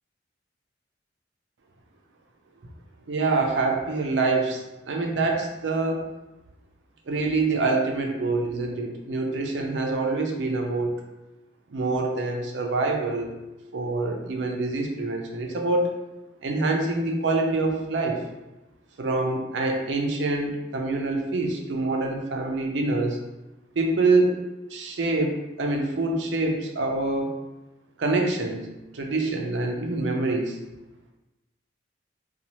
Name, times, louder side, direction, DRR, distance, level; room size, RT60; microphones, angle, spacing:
voice 1, 3.1-4.6 4.9-6.0 7.1-11.0 11.7-13.3 13.7-16.0 16.4-18.2 19.0-23.2 23.8-24.4 24.7-27.3 28.0-28.7 28.9-30.6, right 3 dB, 75° right, 1 dB, 0.5 m, -25 dB
2.7 x 2.3 x 3.0 m, 0.99 s
head